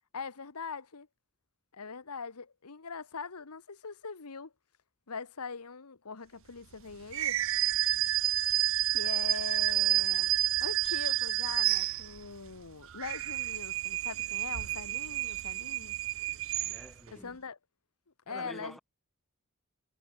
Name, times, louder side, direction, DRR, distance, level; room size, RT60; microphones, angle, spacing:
voice 1, 0.1-1.1 1.7-4.5 5.1-7.4 8.9-10.3 10.6-16.0 17.1-17.6 18.3-18.8, left 5 dB, 85° left, 1.2 m, -42 dB
sound 1, 7.1-12.4 12.8-17.1, right 15 dB, 60° right, 0.5 m, -30 dB
voice 2, 16.6-17.4 18.3-18.8, equal, ahead, 7.3 m, -47 dB
head